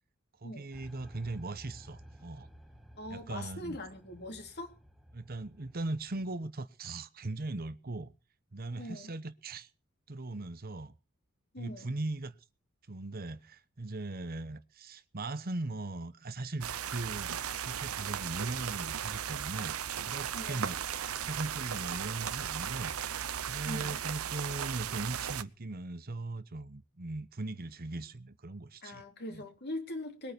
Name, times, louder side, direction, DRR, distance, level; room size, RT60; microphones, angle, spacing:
voice 1, 0.4-2.5 3.1-3.8 5.1-8.1 8.5-9.7 10.1-10.9 11.6-12.4 12.9-17.3 17.6-19.7 20.0-22.9 23.4-29.0 29.3-29.4, right 2 dB, 45° right, 1.0 m, -39 dB
sound 1, 0.7-6.5, equal, ahead, 1.5 m, -54 dB
voice 2, 2.9-4.8 8.8-9.1 11.5-11.9 20.3-20.7 23.6-24.0 28.8-30.3, left 1 dB, 50° left, 3.3 m, -42 dB
sound 2, 16.6-25.4, right 9 dB, 80° right, 0.8 m, -36 dB
21.0 x 9.0 x 6.9 m
head